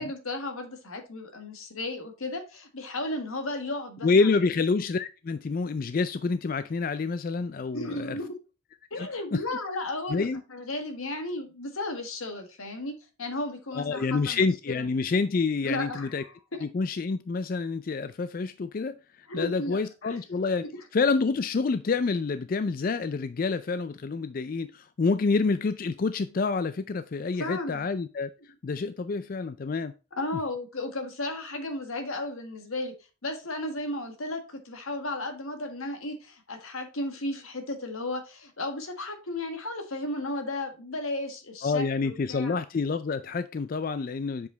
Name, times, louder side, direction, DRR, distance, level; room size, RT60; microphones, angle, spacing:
voice 1, 0.0-4.3 7.7-8.4 8.9-14.8 15.6-16.3 19.3-20.2 27.4-27.9 30.1-32.9 33.2-42.6, left 2 dB, 85° left, 1.6 m, -34 dB
voice 2, 4.0-8.1 9.0-9.4 10.1-10.4 13.7-16.2 16.6-20.7 20.9-28.3 28.6-29.9 41.6-44.5, left 4 dB, 40° left, 0.3 m, -28 dB
7.1 x 5.0 x 3.9 m
head